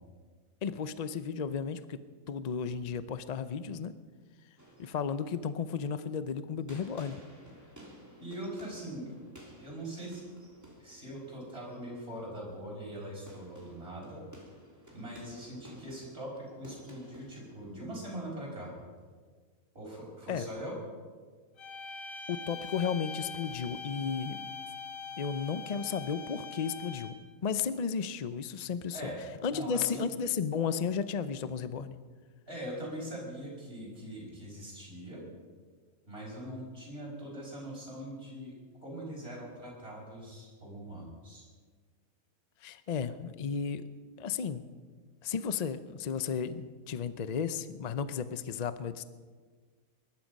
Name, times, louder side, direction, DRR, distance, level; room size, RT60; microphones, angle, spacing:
voice 1, 0.6-2.0 2.3-3.9 4.8-7.2 20.3-20.4 22.3-24.4 25.2-27.2 27.4-29.0 29.4-32.0 42.6-43.8 44.2-44.6 45.2-49.0, left 6 dB, 50° left, 12 dB, 0.5 m, -34 dB
sound 1, 4.6-19.1, right 1 dB, 10° right, 3.0 m, -55 dB
voice 2, 8.2-9.1 9.6-10.2 10.8-14.2 14.9-18.7 19.7-20.8 28.9-29.2 29.5-30.0 32.5-35.2 36.1-38.5 38.8-41.4, right 1 dB, 45° right, -4 dB, 5.9 m, -42 dB
sound 2, 21.6-27.3, left 5 dB, 65° left, 1.8 m, -43 dB
21.0 x 12.0 x 5.3 m, 1.5 s
omnidirectional pair, 1.5 m